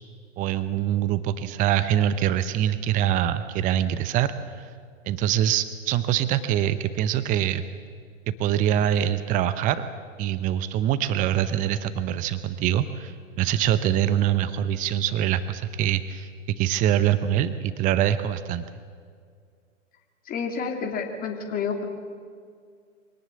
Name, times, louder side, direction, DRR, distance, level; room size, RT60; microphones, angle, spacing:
voice 1, 0.4-4.7 5.0-7.6 8.4-9.8 10.2-18.6, right 11 dB, 20° right, 13 dB, 0.8 m, -24 dB
voice 2, 20.2-21.8, left 5 dB, 25° left, 2 dB, 3.0 m, -29 dB
25.0 x 18.5 x 8.3 m, 2.1 s
figure-of-eight pair, 115°, 38 cm